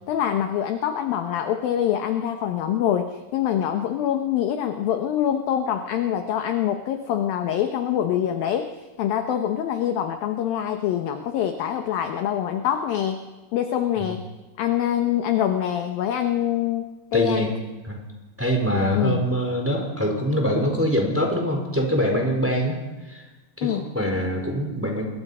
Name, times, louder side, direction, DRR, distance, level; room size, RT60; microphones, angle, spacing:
voice 1, 0.1-8.7 9.0-14.2 14.6-16.9 17.1-17.5 18.9-19.2 23.6-23.8, left 10 dB, 75° left, 6 dB, 2.2 m, -25 dB
voice 2, 17.1-17.5 17.8-18.0 18.4-22.8 23.1-23.2 23.6-25.0, equal, 5° right, 2 dB, 3.5 m, -24 dB
29.0 x 22.5 x 5.6 m, 1.2 s
omnidirectional pair, 5.5 m